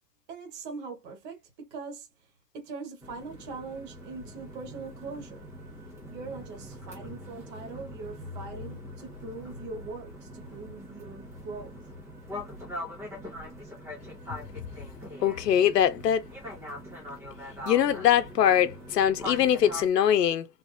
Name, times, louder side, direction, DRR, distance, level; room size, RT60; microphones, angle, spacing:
voice 1, 0.3-2.3 2.5-5.4 6.1-11.7, right 4 dB, 20° right, 1.3 m, -41 dB
sound 1, 3.0-19.9, left 1 dB, 5° right, 0.6 m, -42 dB
voice 2, 15.2-16.2 17.7-20.5, left 10 dB, 85° left, 0.8 m, -22 dB
3.6 x 3.2 x 2.6 m
hypercardioid pair, 145°, 47 cm